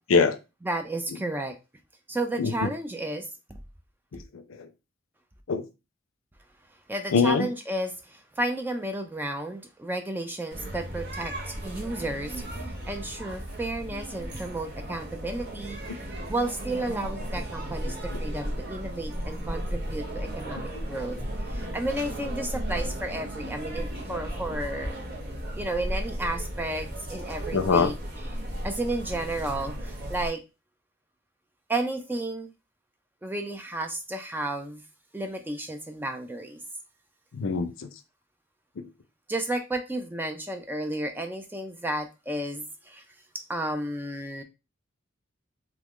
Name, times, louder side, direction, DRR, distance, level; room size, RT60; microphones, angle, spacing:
voice 1, 0.6-1.6 2.1-3.6 6.9-16.0 16.3-21.2 21.5-25.0 25.6-28.0 28.6-30.4 31.7-32.5 33.2-34.8 35.1-36.6 39.3-43.0 43.5-44.4, right 1 dB, 10° right, 0.3 m, -32 dB
voice 2, 2.4-2.7 4.1-4.2 4.6-4.7 5.5-5.6 7.1-7.5 18.1-18.2 27.5-27.9 37.3-37.9 38.8-38.9, left 5 dB, 75° left, 0.5 m, -23 dB
sound 1, 10.5-30.3, equal, 50° right, 1.0 m, -35 dB
2.9 x 2.4 x 3.6 m
head